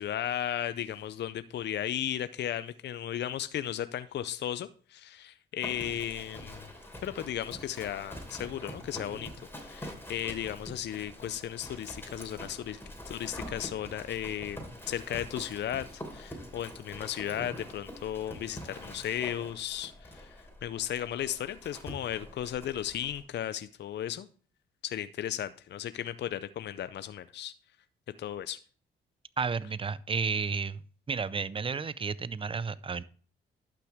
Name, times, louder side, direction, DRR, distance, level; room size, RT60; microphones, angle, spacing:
voice 1, 0.0-6.7 7.0-9.3 9.6-12.8 13.1-14.6 14.9-24.3 24.8-27.5 28.2-28.6, left 11 dB, 55° left, 0.5 m, -35 dB
Livestock farm animals working animals, 5.6-23.2, equal, 10° left, 3.1 m, -45 dB
voice 2, 29.4-30.8 31.1-33.0, right 5 dB, 25° right, 0.6 m, -32 dB
11.5 x 5.9 x 3.5 m
supercardioid pair, 65°, 21 cm